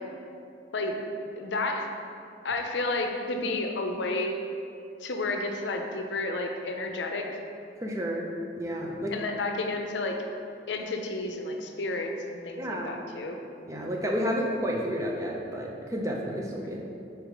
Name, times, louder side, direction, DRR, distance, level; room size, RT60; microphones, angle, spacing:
voice 1, 0.7-1.0 1.4-1.9 2.4-4.4 5.0-7.3 9.1-10.2 10.7-13.4, left 2 dB, 75° left, 3 dB, 0.6 m, -31 dB
voice 2, 7.8-8.3 8.6-9.1 12.6-13.0 13.6-16.9, equal, 15° right, -1 dB, 0.6 m, -31 dB
4.8 x 4.5 x 5.1 m, 2.6 s
head